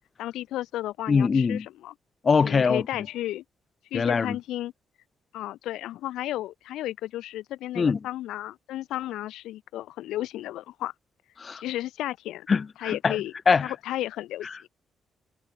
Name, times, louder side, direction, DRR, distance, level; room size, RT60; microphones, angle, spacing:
voice 1, 0.2-1.9 2.4-3.4 3.9-4.7 5.3-10.9 11.6-12.5 12.8-13.3 13.6-14.7, left 14 dB, 80° left, 0.9 m, -33 dB
voice 2, 1.1-1.7 2.2-2.8 3.9-4.4 7.8-8.0 11.4-11.6 12.5-13.2 13.5-13.7, left 5 dB, 45° left, 0.7 m, -22 dB
supercardioid pair, 50°, 0 cm